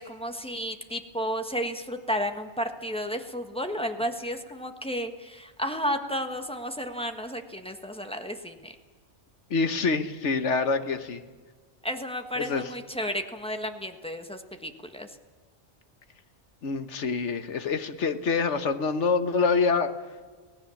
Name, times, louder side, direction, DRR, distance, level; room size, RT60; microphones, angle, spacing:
voice 1, 0.0-8.7 11.8-15.1, equal, 5° left, 5 dB, 1.5 m, -32 dB
voice 2, 9.5-11.2 12.4-12.7 16.6-19.9, left 4 dB, 80° left, 9 dB, 1.5 m, -26 dB
26.0 x 17.5 x 7.2 m, 1.4 s
omnidirectional pair, 1.2 m